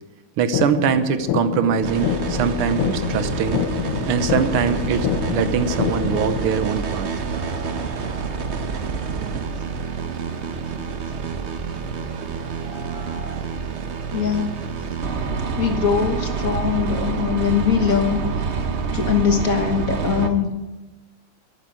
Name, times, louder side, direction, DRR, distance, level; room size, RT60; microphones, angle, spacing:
voice 1, 0.4-3.6 4.1-7.1, right 7 dB, 80° right, 11 dB, 1.8 m, -22 dB
sound 1, 0.5-6.5, left 11 dB, 90° left, 1.6 m, -26 dB
sound 2, 1.8-20.3, right 5 dB, 55° right, 0.7 m, -27 dB
sound 3, 7.3-13.4, right 2 dB, 25° right, 2.5 m, -45 dB
voice 2, 14.1-14.6 15.6-18.2 18.9-20.5, left 7 dB, 45° left, 5 dB, 1.5 m, -21 dB
11.5 x 9.4 x 8.9 m, 1.1 s
omnidirectional pair, 2.4 m